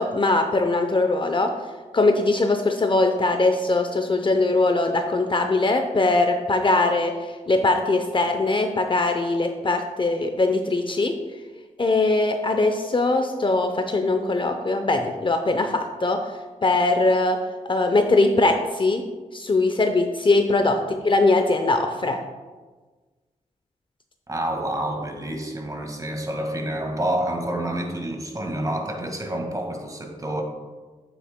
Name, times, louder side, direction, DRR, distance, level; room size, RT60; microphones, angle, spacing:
voice 1, 0.0-1.5 1.9-7.1 7.5-11.2 11.8-16.2 16.6-17.4 17.7-19.0 19.3-22.2, left 2 dB, 35° left, 6 dB, 0.7 m, -21 dB
voice 2, 24.3-30.4, right 1 dB, 25° right, 3 dB, 1.7 m, -28 dB
8.4 x 8.4 x 2.2 m, 1.3 s
cardioid pair, 50°, 15 cm